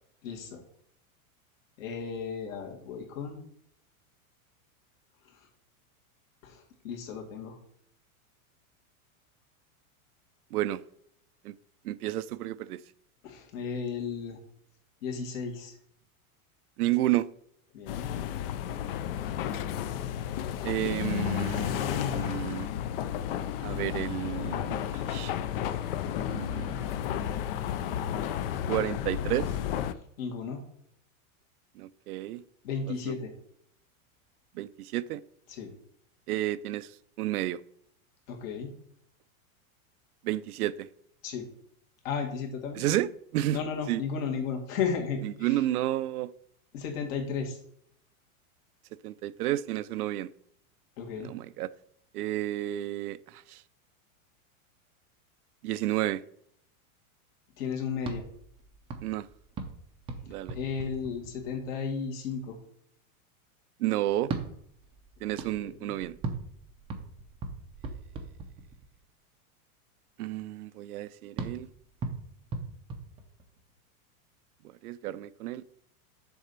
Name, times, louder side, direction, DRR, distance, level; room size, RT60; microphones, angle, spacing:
voice 1, 0.2-0.6 1.8-3.4 6.4-7.6 13.2-14.4 15.0-15.7 17.7-18.1 30.2-30.6 32.6-33.3 35.5-35.7 38.3-38.7 41.2-41.5 42.0-42.8 43.5-45.6 46.7-47.6 51.0-51.3 57.6-58.2 60.5-62.6 65.6-66.0, left 6 dB, 65° left, 2.2 m, -34 dB
voice 2, 10.5-10.8 11.4-11.5 11.8-12.8 16.8-17.3 20.6-22.7 23.6-25.3 26.3-26.8 28.7-29.5 31.8-32.4 33.1-33.2 34.5-35.2 36.3-36.9 37.2-37.6 40.2-40.9 42.7-43.6 43.9-44.0 45.2-46.3 49.0-50.3 51.2-51.7 52.1-53.6 55.6-56.2 59.0-59.3 60.3-60.6 63.8-64.3 65.2-66.2 70.2-71.7 74.8-75.6, right 14 dB, 85° right, 0.6 m, -31 dB
sound 1, 17.9-29.9, left 10 dB, 45° left, 0.4 m, -32 dB
sound 2, 58.0-61.8 64.2-69.0 71.4-73.8, right 3 dB, 15° right, 0.5 m, -40 dB
7.0 x 4.2 x 6.7 m
supercardioid pair, 150°, 43 cm